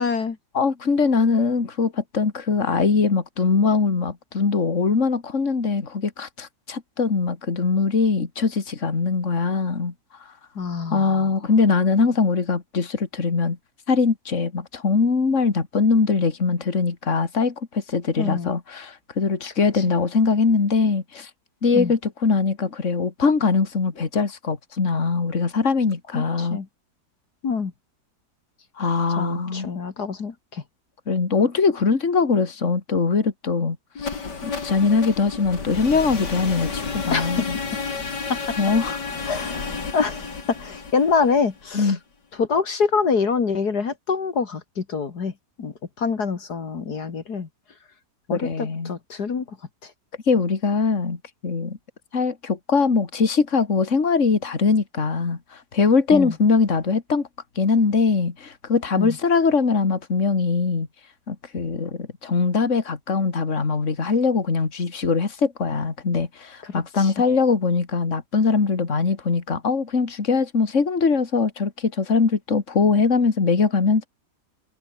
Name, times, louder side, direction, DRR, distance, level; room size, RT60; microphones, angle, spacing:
voice 1, 0.0-0.4 10.6-11.2 18.2-18.5 19.8-19.9 21.7-21.9 26.1-26.7 27.4-27.7 29.2-30.6 37.1-37.4 38.3-38.4 39.3-39.6 39.9-41.9 42.4-45.3 45.6-47.5 48.3-49.4 49.8-49.9 56.1-56.3 59.0-59.2 66.7-67.1, left 5 dB, 70° left, 2.6 m, -25 dB
voice 2, 0.5-9.9 10.9-13.6 13.9-21.3 21.6-26.6 28.8-29.7 31.1-34.1 34.4-37.6 38.6-39.0 41.7-42.0 48.3-48.9 50.3-51.8 52.1-57.3 57.6-60.9 61.3-74.1, left 4 dB, 45° left, 2.7 m, -22 dB
sound 1, 34.0-41.9, left 4 dB, 85° left, 3.6 m, -31 dB
omnidirectional pair, 1.8 m